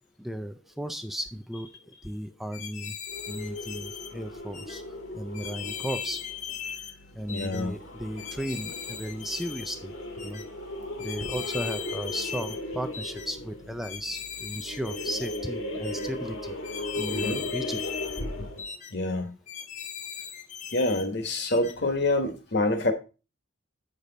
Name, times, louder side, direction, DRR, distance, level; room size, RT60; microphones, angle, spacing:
voice 1, 0.2-3.0 3.3-4.8 5.1-6.2 7.1-9.9 10.2-10.4 11.0-16.6 17.0-17.8, equal, ahead, 0.4 m, -35 dB
sound 1, 2.5-4.1 4.5-4.8 5.3-7.0 7.3-7.6 8.2-9.8 10.2-10.4 11.0-12.6 12.9-13.3 13.8-15.4 15.8-16.1 16.6-18.3 18.6-18.9 19.5-21.1 21.5-21.8, left 8 dB, 35° left, 0.8 m, -38 dB
sound 2, 3.1-18.8, left 1 dB, 75° left, 1.9 m, -37 dB
voice 2, 7.3-7.7 17.1-17.4 18.9-19.3 20.7-22.9, left 2 dB, 55° left, 1.4 m, -27 dB
8.6 x 6.7 x 4.0 m
head